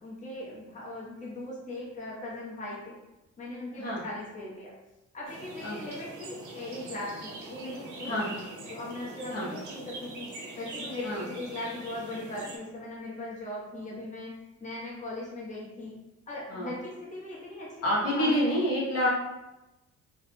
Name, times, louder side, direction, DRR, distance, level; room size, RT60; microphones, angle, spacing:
voice 1, 0.0-2.9 3.4-4.7 5.1-14.3 14.6-16.0 16.3-18.5, left 1 dB, 25° left, -6 dB, 0.8 m, -39 dB
sound 1, 5.2-12.6, right 2 dB, 75° right, 0.7 m, -43 dB
voice 2, 17.8-19.1, equal, 55° left, -6 dB, 0.8 m, -27 dB
2.3 x 2.1 x 3.0 m, 0.99 s
cardioid pair, 90°, 30 cm